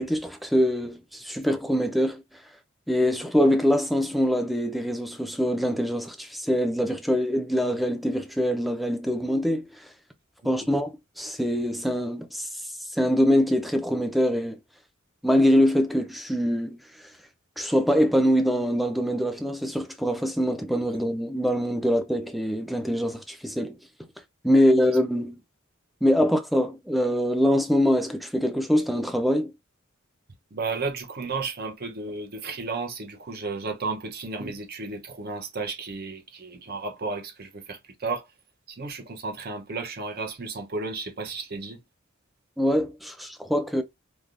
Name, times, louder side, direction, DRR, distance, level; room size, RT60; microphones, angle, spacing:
voice 1, 0.0-2.2 2.9-9.9 10.4-12.6 12.9-14.6 15.2-17.1 17.6-23.8 24.4-25.4 26.0-29.5 42.6-43.8, equal, ahead, 0.4 m, -24 dB
voice 2, 30.5-38.3 38.7-41.8, right 3 dB, 50° right, 0.7 m, -33 dB
3.3 x 2.2 x 2.5 m
head